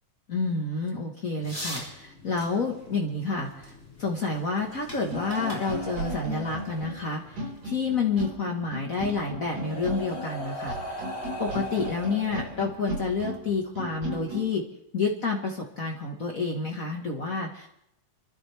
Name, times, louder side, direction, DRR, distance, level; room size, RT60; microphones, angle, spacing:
voice 1, 0.3-3.7 4.0-11.0 11.4-14.7 14.9-17.7, left 4 dB, 70° left, 0 dB, 0.8 m, -29 dB
sound 1, 1.4-8.0, left 1 dB, 5° left, 5.1 m, -44 dB
sound 2, 4.9-14.5, right 1 dB, 60° right, 6.1 m, -36 dB
sound 3, 5.1-7.3 8.6-8.7 9.4-13.1 14.1-14.3, left 1 dB, 25° left, 2.0 m, -39 dB
28.5 x 12.5 x 3.4 m, 0.76 s
omnidirectional pair, 3.8 m